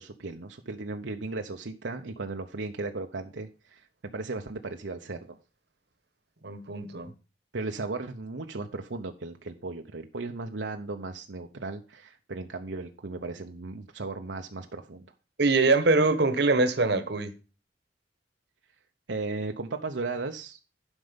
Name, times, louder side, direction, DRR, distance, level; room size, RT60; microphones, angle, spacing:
voice 1, 0.0-5.4 7.5-15.1 19.1-20.6, right 3 dB, 85° right, 0.9 m, -36 dB
voice 2, 6.4-7.1 15.4-17.3, right 3 dB, 65° right, 1.3 m, -23 dB
11.5 x 5.4 x 5.2 m
head